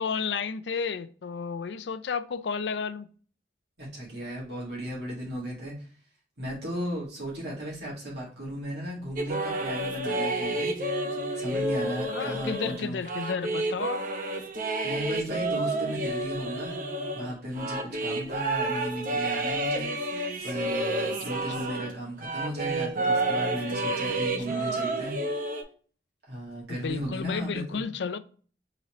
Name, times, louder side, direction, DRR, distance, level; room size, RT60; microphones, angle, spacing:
voice 1, 0.0-3.1 12.1-14.0 21.3-21.7 24.1-24.2 24.5-24.8 26.7-28.2, left 5 dB, 90° left, 0.4 m, -32 dB
voice 2, 3.8-5.9 6.4-10.7 11.3-13.0 14.8-16.8 17.1-19.9 20.4-25.2 26.2-27.8, equal, 80° right, 2.1 m, -35 dB
sound 1, 9.2-21.9 22.2-25.6, right 2 dB, 50° right, 0.7 m, -30 dB
4.2 x 3.9 x 3.1 m
head